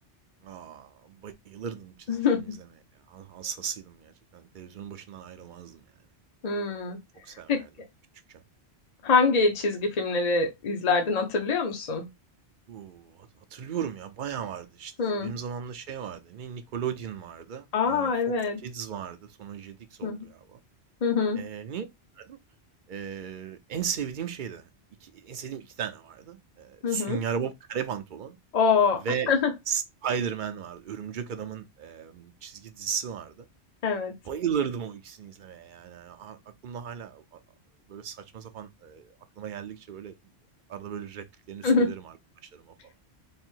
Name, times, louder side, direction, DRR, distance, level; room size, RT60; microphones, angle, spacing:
voice 1, 0.4-2.5 3.1-5.8 7.3-7.7 12.7-18.3 18.6-20.6 21.4-21.9 22.2-22.4 22.9-24.7 25.0-28.4 29.0-29.3 29.7-33.5 34.2-36.4 36.6-37.4 37.9-40.1 40.7-42.2 42.5-42.7, right 7 dB, 55° right, 0.7 m, -36 dB
voice 2, 2.1-2.4 6.4-7.0 7.5-7.6 9.0-12.0 15.0-15.3 17.7-18.6 20.0-20.3 21.0-21.4 26.8-27.2 28.5-29.5 33.8-34.1 41.6-41.9, left 4 dB, 40° left, 0.8 m, -24 dB
3.3 x 2.5 x 4.5 m
omnidirectional pair, 1.1 m